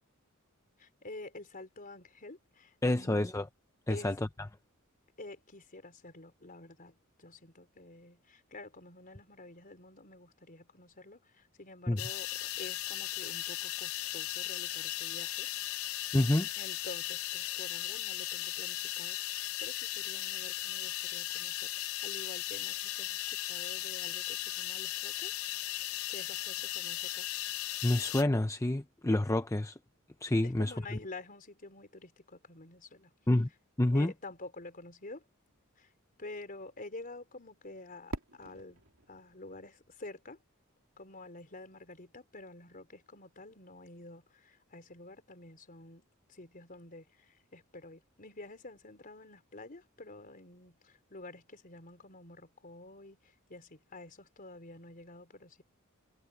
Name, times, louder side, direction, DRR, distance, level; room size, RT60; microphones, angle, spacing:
voice 1, 0.8-3.3 3.9-4.1 5.2-15.5 16.6-25.3 26.1-27.3 30.4-33.1 33.9-35.3 35.8-35.9 36.2-38.8 39.1-40.4 41.0-46.0 46.3-53.2 53.5-55.6, left 2 dB, 40° left, 4.1 m, -49 dB
voice 2, 2.8-3.5 3.9-4.3 11.9-12.0 16.1-16.5 27.8-29.8 30.2-31.0 33.3-33.5 33.8-34.1, left 1 dB, 15° left, 0.7 m, -28 dB
sound 1, 12.0-28.2, left 15 dB, 75° left, 0.7 m, -37 dB
Fireworks, 38.1-41.0, right 1 dB, 65° right, 3.7 m, -46 dB
head